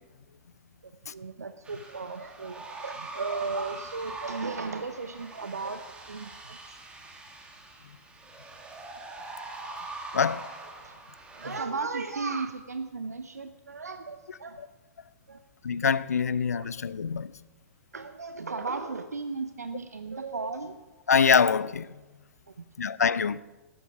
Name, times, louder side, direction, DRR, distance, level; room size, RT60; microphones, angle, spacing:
voice 1, 0.8-6.8 10.8-11.0 11.3-14.6 15.3-15.4 16.5-16.7 17.9-20.8 22.5-22.6, right 4 dB, 80° right, 0.8 m, -36 dB
sound 1, 1.6-11.6, right 2 dB, 10° right, 2.6 m, -43 dB
voice 2, 10.1-10.5 14.6-14.7 15.6-17.3 21.1-21.9 22.8-23.4, left 6 dB, 75° left, 0.6 m, -24 dB
17.5 x 14.0 x 4.8 m
figure-of-eight pair, 110°, 9 cm